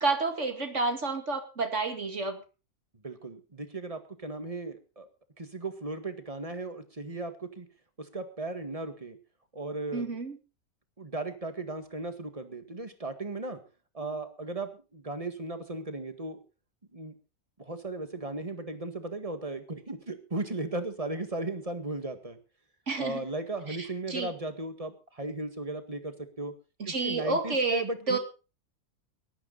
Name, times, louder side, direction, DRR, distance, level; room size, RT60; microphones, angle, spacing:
voice 1, 0.0-2.4 9.9-10.4 22.9-23.2 23.7-23.8 24.1-24.3 26.8-28.2, right 3 dB, 50° right, 7 dB, 2.6 m, -30 dB
voice 2, 3.0-5.1 5.4-7.7 8.0-9.2 9.5-10.2 11.0-13.6 13.9-16.4 16.9-17.1 17.6-22.4 23.0-26.5 26.9-28.2, right 2 dB, 25° right, 9 dB, 1.9 m, -36 dB
18.5 x 13.0 x 4.1 m, 0.32 s
omnidirectional pair, 1.6 m